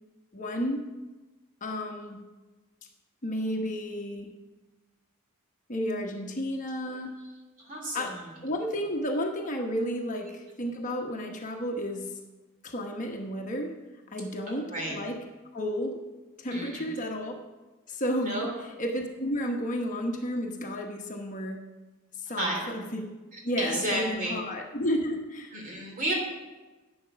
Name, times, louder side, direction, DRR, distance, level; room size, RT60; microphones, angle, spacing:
voice 1, 0.3-0.8 1.6-2.2 3.2-4.3 5.7-7.1 7.9-8.1 8.4-12.1 12.6-13.7 14.1-15.2 15.5-16.0 16.4-17.3 17.9-18.4 18.8-21.6 22.2-23.1 23.4-25.5, equal, 35° left, 2 dB, 1.1 m, -32 dB
voice 2, 7.6-8.3 14.7-15.0 16.5-16.9 18.2-18.5 22.3-22.6 23.3-24.4 25.5-26.1, right 1 dB, 40° right, -1 dB, 3.2 m, -32 dB
11.0 x 8.0 x 6.2 m, 1.2 s
head